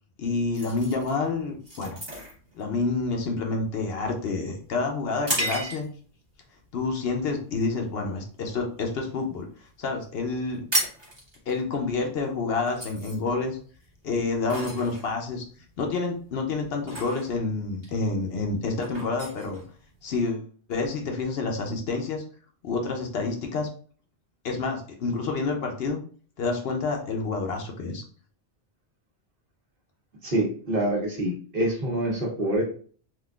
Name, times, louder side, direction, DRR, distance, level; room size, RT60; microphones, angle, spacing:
voice 1, 0.2-2.0 2.5-5.9 6.7-9.4 9.8-10.6 11.5-13.6 14.0-15.4 15.8-19.6 20.0-22.2 22.6-23.7 24.4-26.0 26.4-28.0, left 3 dB, 65° left, 3 dB, 0.8 m, -28 dB
sound 1, 0.5-6.1 6.7-6.9 7.4-7.7 8.1-9.2 9.5-9.6 9.8-10.0 10.3-20.3, right 1 dB, 25° right, 1.2 m, -34 dB
voice 2, 30.2-32.6, right 1 dB, 50° right, -3 dB, 1.2 m, -26 dB
3.6 x 2.5 x 2.3 m, 0.43 s
omnidirectional pair, 1.2 m